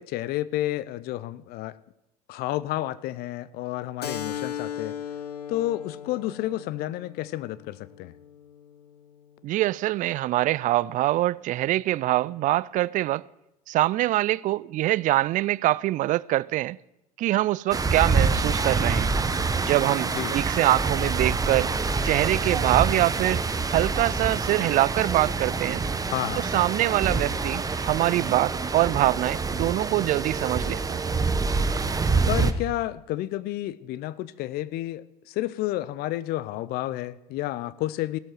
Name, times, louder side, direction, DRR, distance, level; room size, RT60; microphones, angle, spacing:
voice 1, 0.0-1.8 2.3-4.9 5.5-8.1 20.1-20.3 26.1-26.7 32.3-38.2, left 15 dB, 50° left, 0.6 m, -31 dB
Keyboard (musical), 4.0-9.1, left 9 dB, 90° left, 0.8 m, -37 dB
voice 2, 9.4-13.2 13.7-16.8 17.2-19.1 19.6-21.7 22.0-23.4 23.7-25.8 26.4-31.0, right 16 dB, 40° right, 0.4 m, -24 dB
sound 1, 17.7-32.5, right 4 dB, 20° right, 1.0 m, -26 dB
16.5 x 12.0 x 4.5 m
hypercardioid pair, 70°, 20 cm